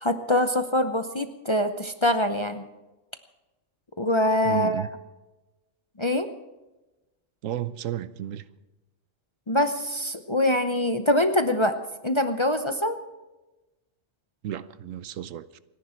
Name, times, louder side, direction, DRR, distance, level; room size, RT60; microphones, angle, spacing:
voice 1, 0.0-2.6 4.0-4.9 6.0-6.3 9.5-11.8 12.0-13.0, left 1 dB, 30° left, 0.6 m, -24 dB
voice 2, 4.4-4.9 7.4-8.5 14.4-15.6, right 11 dB, 80° right, 1.1 m, -33 dB
28.5 x 10.5 x 4.5 m
omnidirectional pair, 1.3 m